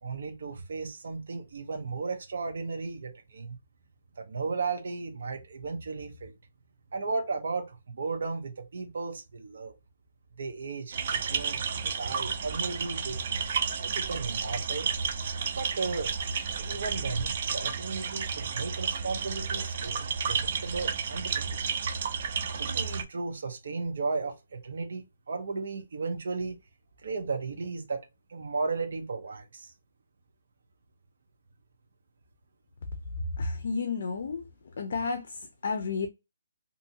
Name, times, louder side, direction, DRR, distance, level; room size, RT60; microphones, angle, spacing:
voice 1, 0.0-3.6 4.2-6.3 6.9-9.7 10.4-13.2 13.8-14.9 15.6-16.1 16.6-21.6 22.6-26.6 27.0-28.0 28.3-29.7, right 4 dB, 55° right, 0.7 m, -35 dB
sound 1, 10.9-23.0, right 6 dB, 40° right, 0.4 m, -32 dB
voice 2, 33.4-34.4 34.8-36.1, left 4 dB, 55° left, 0.5 m, -31 dB
2.6 x 2.6 x 2.7 m
hypercardioid pair, 170°, 0 cm